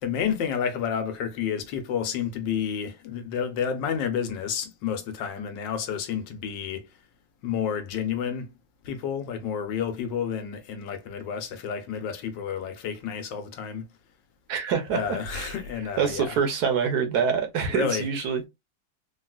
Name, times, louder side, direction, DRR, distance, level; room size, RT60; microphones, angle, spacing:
voice 1, 0.0-6.9 7.4-8.5 8.8-13.9 14.9-16.4 17.7-18.1, left 7 dB, 85° left, 1.4 m, -30 dB
voice 2, 14.5-15.5 16.0-18.5, right 6 dB, 65° right, 1.2 m, -26 dB
3.6 x 2.3 x 2.3 m
omnidirectional pair, 1.9 m